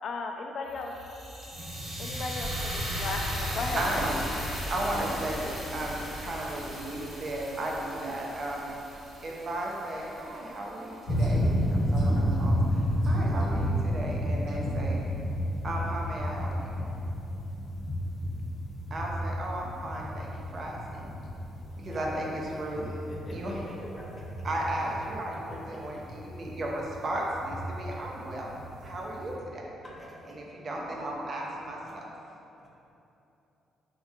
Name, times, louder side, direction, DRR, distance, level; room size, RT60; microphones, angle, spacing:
voice 1, 0.0-0.9 2.0-4.0, left 3 dB, 60° left, 2 dB, 0.3 m, -35 dB
sound 1, 0.7-10.8, equal, 70° right, 1.2 m, -37 dB
voice 2, 3.8-8.7 9.2-15.0 15.6-16.9 18.9-21.1 21.8-23.0 23.3-23.6 24.4-28.5 28.8-29.7 30.2-32.0, right 1 dB, 45° right, -2 dB, 0.6 m, -35 dB
sound 2, 11.1-29.3, equal, 85° left, 1.0 m, -31 dB
voice 3, 21.6-22.1 23.3-23.4 23.6-24.1 30.0-30.3, equal, 15° left, -5 dB, 0.8 m, -45 dB
4.3 x 2.8 x 2.4 m, 3.0 s
cardioid pair, 90°, 0 cm